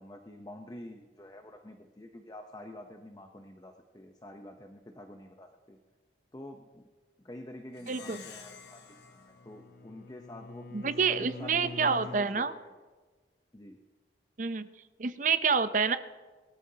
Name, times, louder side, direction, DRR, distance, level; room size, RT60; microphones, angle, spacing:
voice 1, 0.0-5.8 6.3-6.8 7.2-12.7 13.5-13.8, left 1 dB, 20° left, 4 dB, 0.8 m, -47 dB
Plucked string instrument, 7.7-10.5, left 6 dB, 75° left, 1.3 m, -51 dB
voice 2, 7.9-8.2 10.7-12.5 14.4-14.7 15.0-16.0, right 5 dB, 45° right, 11 dB, 0.6 m, -28 dB
Bowed string instrument, 8.9-12.3, left 3 dB, 55° left, 0.4 m, -46 dB
22.0 x 13.0 x 2.8 m, 1.4 s
head